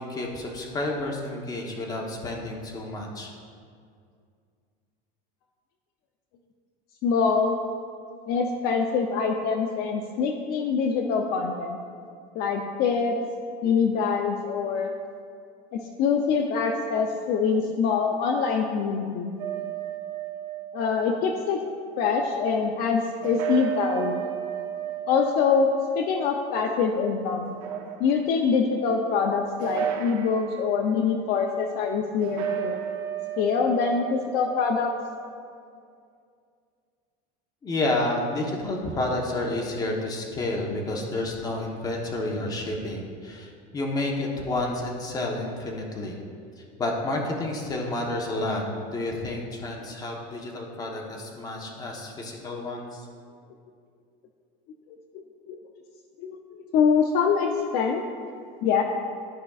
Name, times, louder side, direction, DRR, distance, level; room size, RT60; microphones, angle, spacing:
voice 1, 0.0-3.3 37.6-46.2 46.8-53.0, left 2 dB, 20° left, -1 dB, 1.0 m, -30 dB
voice 2, 7.0-7.6 8.3-11.8 12.3-13.1 13.6-14.9 15.7-19.3 20.7-21.6 22.0-24.3 25.1-25.7 26.0-27.5 28.0-32.8 33.4-34.9 55.5-55.6 56.2-58.0 58.6-58.8, left 5 dB, 50° left, 3 dB, 0.6 m, -24 dB
sound 1, 19.4-21.4 23.2-27.0 27.4-28.4 29.6-30.7 32.2-34.9, right 10 dB, 70° right, 0.9 m, -34 dB
13.0 x 5.1 x 2.4 m, 2.3 s
cardioid pair, 155°, 20 cm